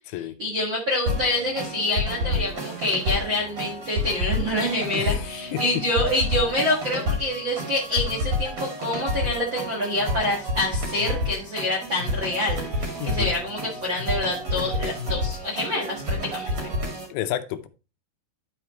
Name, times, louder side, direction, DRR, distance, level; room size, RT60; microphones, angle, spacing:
voice 1, 0.2-16.5, left 1 dB, 70° right, -2 dB, 1.1 m, -27 dB
sound 1, 1.1-17.1, left 1 dB, 35° right, 2.9 m, -29 dB
voice 2, 4.8-5.6 13.0-13.3 17.1-17.7, left 11 dB, 80° left, 9 dB, 2.8 m, -31 dB
12.0 x 4.8 x 2.9 m, 0.31 s
omnidirectional pair, 5.1 m